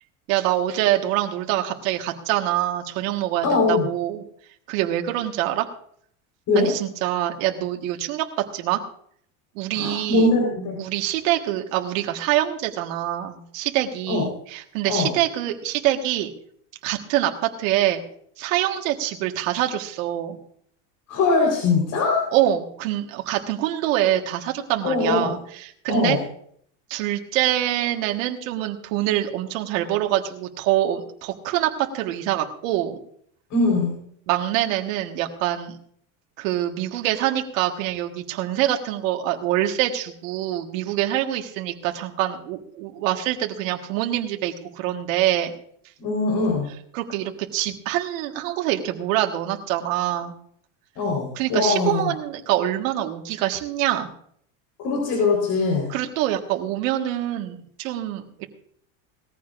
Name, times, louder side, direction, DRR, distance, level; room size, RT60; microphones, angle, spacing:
voice 1, 0.3-4.2 4.7-5.7 6.5-8.3 8.5-8.8 9.5-10.3 10.8-16.3 16.8-18.0 18.4-20.4 22.3-26.2 26.9-33.0 34.3-35.8 36.4-45.5 46.9-50.3 51.3-54.1 55.9-58.5, right 13 dB, 85° right, 3 dB, 1.6 m, -25 dB
voice 2, 3.4-3.9 6.5-6.7 9.7-10.8 14.1-14.2 14.9-15.1 21.1-22.2 24.8-25.3 25.9-26.2 33.5-33.9 46.0-46.7 51.0-52.1 54.8-55.9, left 3 dB, 50° left, -1 dB, 4.2 m, -21 dB
19.5 x 14.5 x 2.5 m, 0.64 s
supercardioid pair, 135°, 39 cm